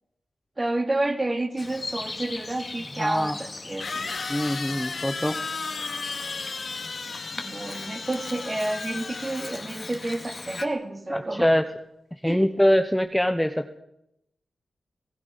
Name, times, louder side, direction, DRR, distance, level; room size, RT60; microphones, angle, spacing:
voice 1, 0.6-4.1 7.4-11.5 12.2-12.5, right 2 dB, 25° right, 5 dB, 2.9 m, -30 dB
Bird vocalization bird call bird song, 1.6-10.7, left 3 dB, 35° left, 2.1 m, -40 dB
voice 2, 3.0-3.4 4.3-5.4 11.1-11.6 12.2-13.8, equal, 5° left, 7 dB, 1.0 m, -23 dB
sound 1, 3.8-9.9, left 4 dB, 50° left, 2.8 m, -34 dB
27.0 x 18.5 x 5.6 m, 0.82 s
wide cardioid pair, 100°, 0 cm